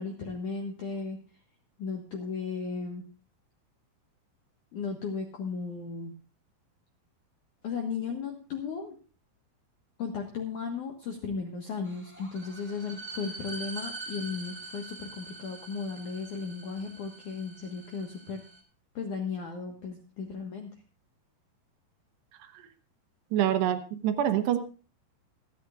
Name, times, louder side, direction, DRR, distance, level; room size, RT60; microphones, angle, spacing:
voice 1, 0.0-1.4 1.8-3.1 4.7-6.2 7.6-9.0 10.0-18.4 18.9-20.7, left 5 dB, 65° left, 2 dB, 2.1 m, -35 dB
sound 1, 11.8-18.6, right 3 dB, 5° right, 2.4 m, -44 dB
voice 2, 23.3-24.6, right 11 dB, 70° right, 8 dB, 2.9 m, -26 dB
27.0 x 9.2 x 2.5 m, 0.36 s
omnidirectional pair, 5.4 m